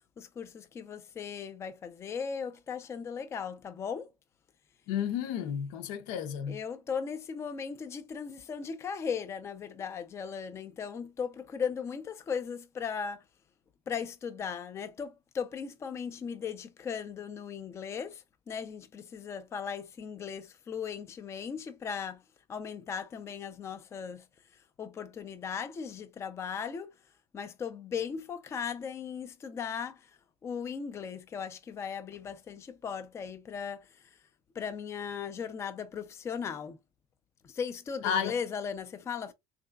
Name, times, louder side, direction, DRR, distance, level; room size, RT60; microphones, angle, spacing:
voice 1, 0.2-4.1 6.5-13.2 13.9-22.2 22.5-24.3 24.8-26.9 27.3-34.1 34.5-36.8 37.4-39.3, left 6 dB, 20° left, 0.4 m, -37 dB
voice 2, 4.9-6.6 38.0-38.3, left 8 dB, 80° left, 0.7 m, -32 dB
3.7 x 3.3 x 2.3 m
cardioid pair, 160°, 13 cm